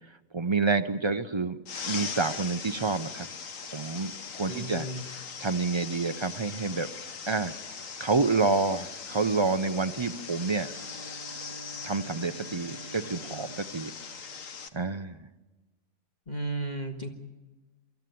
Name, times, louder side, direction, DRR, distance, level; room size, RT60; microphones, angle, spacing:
voice 1, 0.3-1.6 1.8-3.3 3.7-6.9 7.3-10.7 11.8-13.9 14.7-15.3, right 4 dB, 40° right, 9 dB, 0.4 m, -28 dB
sound 1, 1.7-14.7, left 6 dB, 65° left, 1.5 m, -40 dB
voice 2, 4.5-5.0 16.3-17.1, right 2 dB, 30° left, 3 dB, 1.7 m, -34 dB
Bowed string instrument, 10.0-14.6, right 4 dB, 90° right, 1.8 m, -48 dB
24.5 x 13.5 x 9.3 m, 1.2 s
omnidirectional pair, 1.5 m